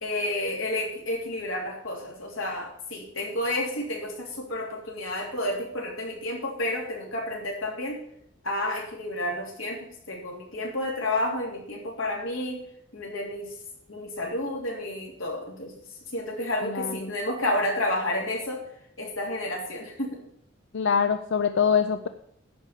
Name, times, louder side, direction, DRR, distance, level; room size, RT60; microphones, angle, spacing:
voice 1, 0.0-8.0 8.4-12.6 12.9-13.5 13.9-15.7 16.1-18.6 19.0-20.2, left 1 dB, 80° left, -1 dB, 3.2 m, -30 dB
voice 2, 16.6-17.1 20.7-22.1, left 6 dB, 65° left, 9 dB, 0.5 m, -24 dB
11.0 x 4.9 x 8.4 m, 0.67 s
head